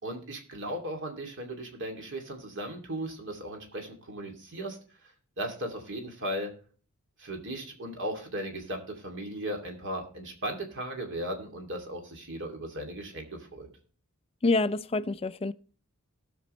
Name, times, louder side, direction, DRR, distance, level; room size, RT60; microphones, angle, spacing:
voice 1, 0.0-4.8 5.4-6.5 7.2-13.7, right 1 dB, 55° right, 2.5 m, -37 dB
voice 2, 14.4-15.5, left 3 dB, 25° left, 0.4 m, -27 dB
18.5 x 6.2 x 3.1 m
head